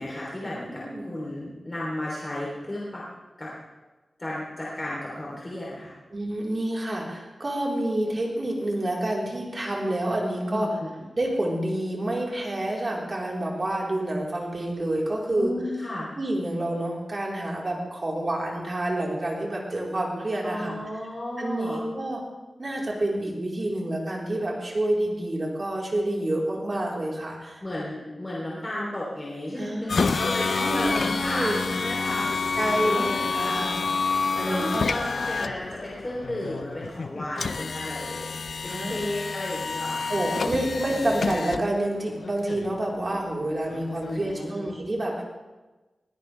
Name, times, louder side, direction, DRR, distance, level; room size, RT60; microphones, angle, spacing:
voice 1, 0.0-3.0 3.4-3.5 4.2-6.0 10.5-11.1 15.3-16.1 20.4-21.8 27.6-33.7 34.4-40.6 44.0-44.7, left 1 dB, 25° left, -5 dB, 3.5 m, -33 dB
voice 2, 0.7-1.1 6.1-10.7 11.1-15.5 16.2-20.7 21.4-22.2 22.6-27.6 29.6-30.1 30.6-31.6 32.6-33.8 34.4-34.9 38.7-38.9 40.1-45.2, right 1 dB, 40° right, -3 dB, 4.3 m, -28 dB
sound 1, 29.9-44.5, left 4 dB, 75° left, 0.5 m, -29 dB
21.5 x 17.0 x 3.5 m, 1.2 s
wide cardioid pair, 110°, 0 cm